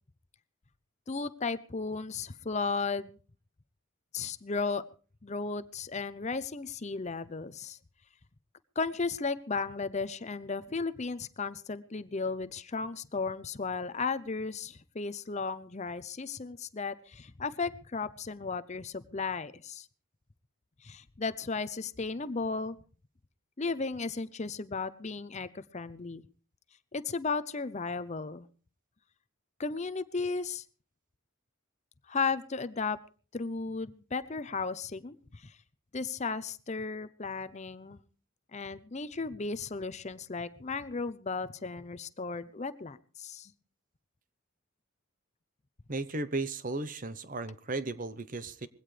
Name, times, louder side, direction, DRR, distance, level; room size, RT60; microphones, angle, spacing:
voice 1, 1.1-3.2 4.1-4.8 5.2-7.8 8.8-19.9 20.8-22.8 23.6-26.2 26.9-28.5 29.6-30.6 32.1-33.0 33.3-35.6 35.9-38.0 38.5-43.5, left 4 dB, 30° left, 14 dB, 0.6 m, -35 dB
voice 2, 45.9-48.7, right 3 dB, 40° right, 13 dB, 0.9 m, -35 dB
21.0 x 16.5 x 3.3 m, 0.38 s
head